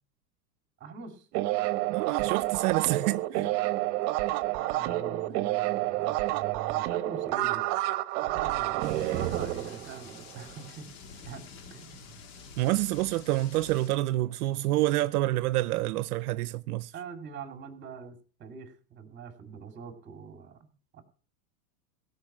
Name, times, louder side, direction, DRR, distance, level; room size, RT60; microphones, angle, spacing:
voice 1, 0.8-1.3 3.3-3.5 4.5-7.7 8.2-10.9 11.2-11.4 11.7-12.2 16.9-21.0, right 6 dB, 25° right, 2.5 m, -43 dB
sound 1, 1.3-10.5, right 16 dB, 50° right, 1.0 m, -29 dB
voice 2, 1.9-3.5 12.6-16.9, right 17 dB, 75° right, 0.7 m, -28 dB
sound 2, 8.8-13.9, left 5 dB, 60° left, 2.0 m, -48 dB
16.5 x 5.5 x 7.3 m
supercardioid pair, 145°, 46 cm